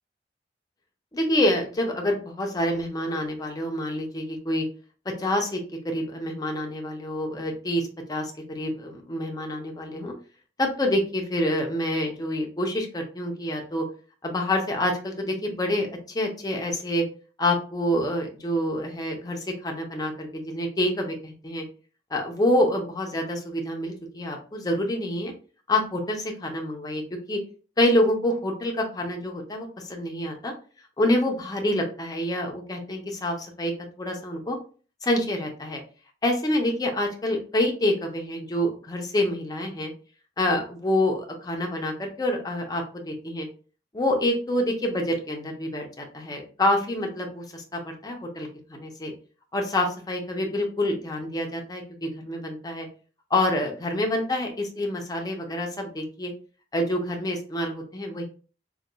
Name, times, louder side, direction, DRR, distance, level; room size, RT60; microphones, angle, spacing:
voice 1, 1.1-4.7 5.2-10.1 10.6-13.8 14.2-15.9 16.1-17.0 17.4-21.6 22.1-25.3 25.7-27.0 27.3-27.4 27.8-30.5 31.0-34.6 35.0-35.8 36.2-39.9 40.4-43.5 43.9-49.1 49.5-52.9 53.3-56.3 56.7-58.2, left 1 dB, 20° left, 2 dB, 0.6 m, -27 dB
3.8 x 2.3 x 2.2 m, 0.38 s
head